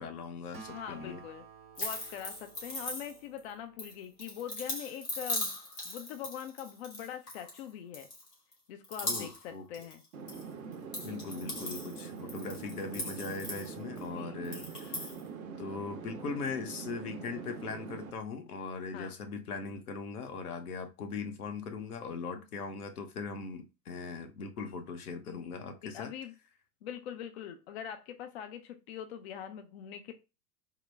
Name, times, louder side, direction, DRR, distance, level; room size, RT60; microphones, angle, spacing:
voice 1, 0.0-1.2 9.0-9.7 11.0-15.1 15.6-26.1, left 4 dB, 70° left, 0.8 m, -40 dB
Acoustic guitar, 0.5-4.3, right 5 dB, 90° right, 1.0 m, -53 dB
voice 2, 0.7-1.4 1.8-5.5 5.8-8.1 8.7-10.0 14.1-14.7 18.9-19.1 25.8-26.3 26.8-30.1, left 9 dB, 45° left, 0.4 m, -43 dB
sound 1, 1.7-3.4 3.8-7.6 7.9-8.5 8.8-10.4 10.7-14.0 14.4-15.2, left 1 dB, 85° left, 1.4 m, -39 dB
sound 2, 10.1-18.1, right 6 dB, 65° right, 0.8 m, -44 dB
3.7 x 2.1 x 3.1 m
figure-of-eight pair, 90°, 47 cm